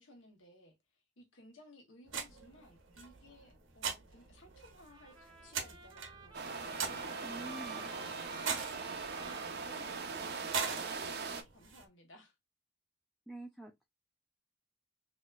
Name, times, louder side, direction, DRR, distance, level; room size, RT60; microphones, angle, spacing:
voice 1, 0.0-8.7 9.2-12.3, left 1 dB, 80° left, 1.5 m, -59 dB
sound 1, 2.1-11.8, right 6 dB, 80° right, 0.9 m, -43 dB
Trumpet, 4.8-10.4, right 3 dB, 25° right, 0.9 m, -52 dB
sound 2, 6.3-11.4, right 4 dB, 55° right, 0.6 m, -41 dB
voice 2, 7.2-7.9 13.3-13.8, right 1 dB, ahead, 0.5 m, -47 dB
4.0 x 2.8 x 2.4 m
head